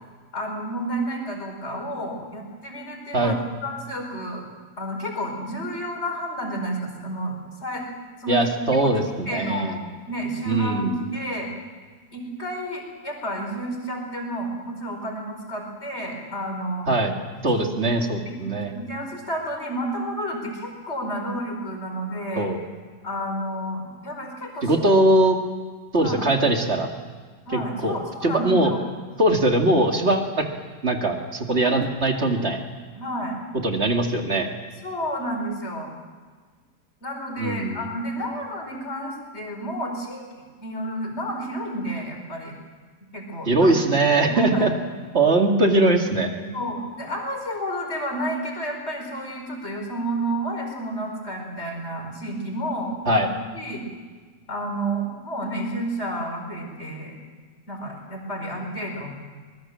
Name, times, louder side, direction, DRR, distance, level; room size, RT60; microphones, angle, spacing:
voice 1, 0.3-4.4 4.8-7.8 8.2-8.4 8.8-9.8 10.1-11.5 12.1-16.9 17.9-18.4 18.7-22.5 23.0-24.7 26.0-26.3 27.5-28.8 29.5-29.6 31.6-31.8 32.9-33.4 34.8-35.9 37.0-42.5 43.1-43.7 44.3-44.7 46.5-53.3 53.5-53.8 54.5-57.2 57.7-59.1, right 1 dB, 40° left, 2 dB, 5.2 m, -31 dB
voice 2, 8.3-9.8 10.4-10.9 16.9-17.1 17.4-18.7 22.4-22.6 24.6-25.4 25.9-26.9 27.5-28.7 29.2-30.4 30.8-32.6 33.6-34.5 37.4-37.8 43.5-44.7 45.1-46.6 53.1-53.3, right 2 dB, 40° right, 3 dB, 2.5 m, -21 dB
23.5 x 20.5 x 7.5 m, 1.5 s
omnidirectional pair, 1.7 m